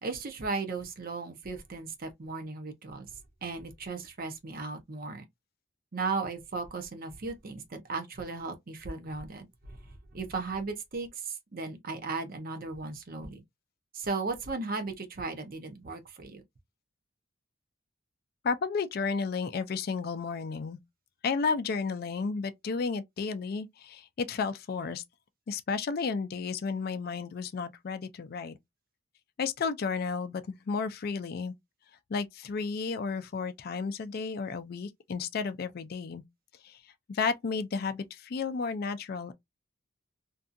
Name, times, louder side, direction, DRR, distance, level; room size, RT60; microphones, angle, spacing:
voice 1, 0.0-3.1 3.4-5.2 5.9-13.4 13.9-16.4, right 4 dB, 45° right, 0.6 m, -36 dB
voice 2, 18.4-20.8 21.2-25.0 25.5-28.6 29.4-31.5 32.1-36.2 36.6-36.8 37.1-39.3, left 5 dB, 50° left, 0.4 m, -32 dB
2.6 x 2.4 x 2.5 m
head